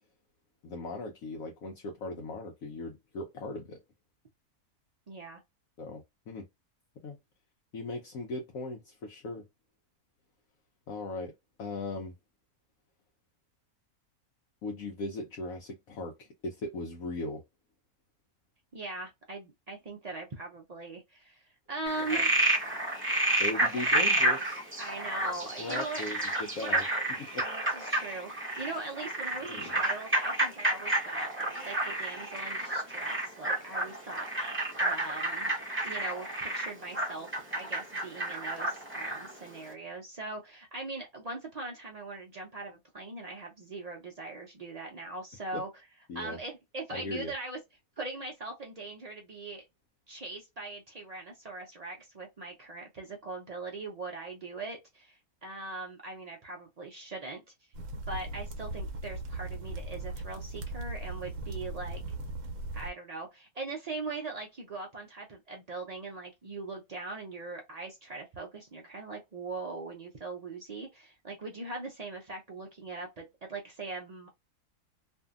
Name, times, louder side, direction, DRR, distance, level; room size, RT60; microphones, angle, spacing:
voice 1, 0.6-3.8 5.8-6.5 7.0-7.2 7.7-9.5 10.9-11.3 11.6-12.1 14.6-17.4 22.0-22.2 23.4-24.6 25.4-26.8 27.2-27.5 29.4-29.8 45.5-45.6 46.1-46.4 46.9-47.3, left 2 dB, 70° left, 1.1 m, -38 dB
voice 2, 5.1-5.4 18.7-22.6 23.7-23.8 24.8-26.1 26.6-26.8 27.1-35.5 35.8-45.7 46.1-47.6 48.0-49.7 50.1-57.4 58.1-62.0 62.7-74.3, right 3 dB, 85° right, 0.3 m, -41 dB
Frog, 21.9-39.3, right 1 dB, 15° right, 0.5 m, -30 dB
sound 1, 57.7-62.9, right 2 dB, 65° right, 0.9 m, -38 dB
2.6 x 2.6 x 2.4 m
omnidirectional pair, 1.6 m